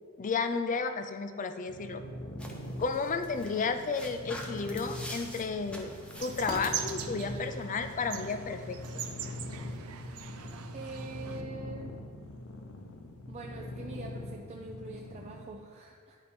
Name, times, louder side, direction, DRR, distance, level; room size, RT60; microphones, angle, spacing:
voice 1, 0.2-2.0 2.8-5.9 6.2-8.8, left 4 dB, 35° left, 9 dB, 0.4 m, -32 dB
sound 1, 1.7-15.5, left 1 dB, 75° left, 0.8 m, -43 dB
sound 2, 2.4-7.5, equal, 5° left, 0.8 m, -44 dB
sound 3, 6.2-11.4, right 6 dB, 80° right, 0.6 m, -41 dB
voice 2, 10.7-12.0 13.3-16.2, right 3 dB, 30° right, -1 dB, 0.4 m, -44 dB
10.0 x 4.5 x 4.3 m, 2.1 s
head